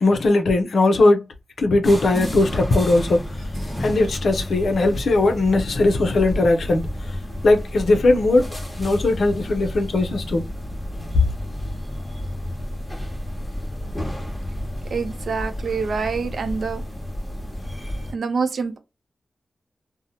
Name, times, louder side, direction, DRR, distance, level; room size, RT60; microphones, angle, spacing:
voice 1, 0.0-1.2 1.6-3.2 3.8-6.8 7.4-8.5 8.8-10.4, left 2 dB, 80° left, 0.5 m, -19 dB
sound 1, 1.8-18.1, left 1 dB, 10° left, 1.1 m, -31 dB
voice 2, 14.9-16.8 18.1-18.8, right 5 dB, 80° right, 0.5 m, -26 dB
2.7 x 2.0 x 2.7 m
wide cardioid pair, 100°, 0 cm